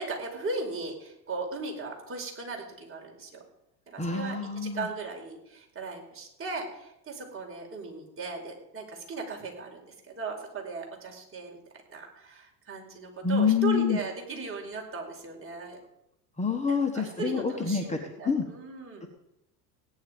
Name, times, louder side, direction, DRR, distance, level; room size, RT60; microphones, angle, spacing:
voice 1, 0.0-3.4 3.9-9.8 10.1-11.6 11.9-15.8 16.7-19.1, right 3 dB, 25° right, 0 dB, 5.0 m, -37 dB
voice 2, 4.0-4.9 13.2-14.0 16.4-18.0 18.2-18.4 19.0-19.1, left 6 dB, 15° left, 3 dB, 1.6 m, -27 dB
17.0 x 10.5 x 5.3 m, 0.83 s
supercardioid pair, 100°, 50 cm